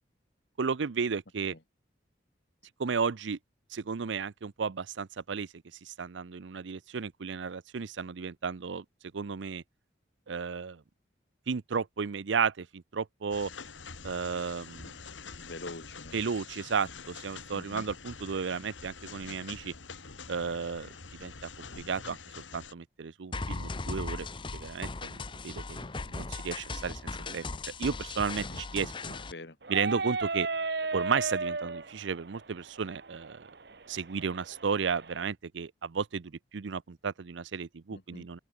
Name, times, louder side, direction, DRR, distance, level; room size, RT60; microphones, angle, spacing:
voice 1, 0.6-1.5 2.8-3.4 3.7-5.5 5.8-8.8 9.1-9.6 10.3-10.8 11.5-13.5 14.0-14.9 16.1-19.7 20.3-20.9 21.2-22.2 22.5-24.3 24.5-27.0 27.3-29.2 29.7-30.5 30.9-33.4 33.9-38.4, right 5 dB, 80° right, 0.6 m, -33 dB
sound 1, 13.3-22.7, left 5 dB, 85° left, 2.0 m, -46 dB
voice 2, 15.4-16.2 17.5-17.9 28.5-28.6 29.1-29.6 37.9-38.3, left 2 dB, 65° left, 2.0 m, -45 dB
sound 2, 23.3-29.3, left 3 dB, 25° left, 0.7 m, -38 dB
sound 3, 29.6-35.2, right 3 dB, 60° right, 1.2 m, -35 dB
open air
head